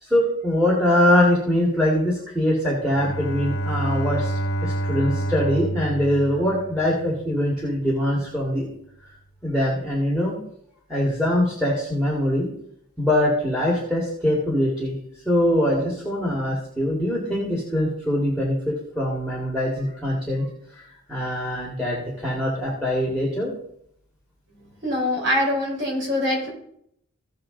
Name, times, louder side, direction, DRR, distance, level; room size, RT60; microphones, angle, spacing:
voice 1, 0.0-4.3 4.6-8.7 9.4-10.4 10.9-12.5 13.0-15.0 15.3-20.5 21.1-23.5, left 1 dB, 5° right, -5 dB, 2.1 m, -23 dB
Bowed string instrument, 2.8-7.1, right 1 dB, 65° left, 1.5 m, -28 dB
voice 2, 24.8-26.5, left 1 dB, 55° right, -3 dB, 4.7 m, -23 dB
16.0 x 6.4 x 3.9 m, 0.73 s
head